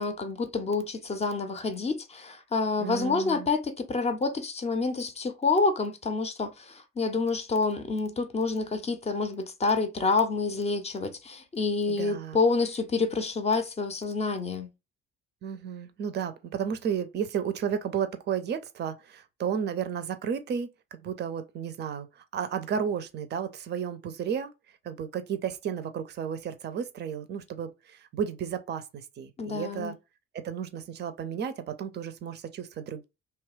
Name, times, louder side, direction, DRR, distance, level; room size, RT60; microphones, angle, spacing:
voice 1, 0.0-14.7 29.4-30.0, left 4 dB, 20° left, 0.6 m, -28 dB
voice 2, 2.8-3.5 11.9-12.4 15.4-24.5 24.8-29.9 30.3-33.0, right 7 dB, 35° right, 0.5 m, -33 dB
2.9 x 2.2 x 3.1 m
figure-of-eight pair, 50°, 31 cm